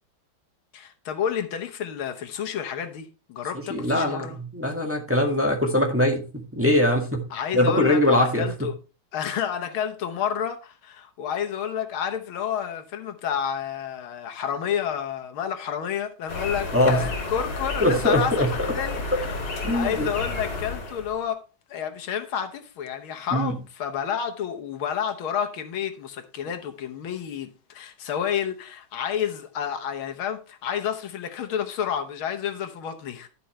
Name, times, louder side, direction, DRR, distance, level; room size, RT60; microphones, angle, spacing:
voice 1, 0.7-4.4 7.3-8.7 9.1-21.4 21.7-33.3, left 8 dB, 80° left, 1.9 m, -30 dB
voice 2, 3.7-6.2 6.5-7.2 7.5-8.5 16.7-17.0 17.8-18.5 19.6-20.1 23.3-23.5, left 1 dB, 5° right, 1.7 m, -21 dB
sound 1, 16.3-21.2, left 3 dB, 60° left, 3.7 m, -31 dB
11.5 x 7.7 x 3.2 m
omnidirectional pair, 2.3 m